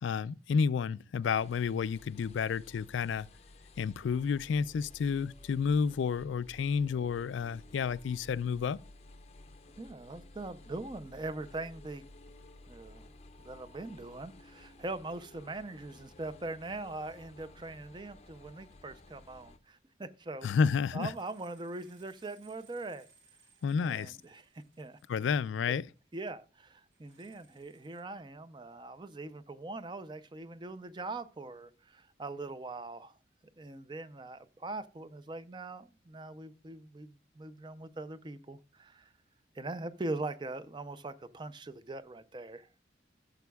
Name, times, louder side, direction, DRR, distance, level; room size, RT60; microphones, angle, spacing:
voice 1, 0.0-3.3 3.8-8.8 20.4-21.1 23.6-24.2 25.1-25.9, left 6 dB, 90° left, 0.4 m, -30 dB
sound 1, 1.2-19.6, left 2 dB, 35° left, 0.5 m, -55 dB
voice 2, 9.8-12.0 12.7-13.1 13.4-20.5 20.9-23.1 23.8-24.4 24.8-25.0 25.7-25.8 26.1-33.2 33.6-39.1 39.5-42.7, right 2 dB, 25° right, 0.5 m, -42 dB
sound 2, 21.0-26.5 26.7-28.0, right 4 dB, 85° right, 1.7 m, -65 dB
14.0 x 7.0 x 2.3 m
head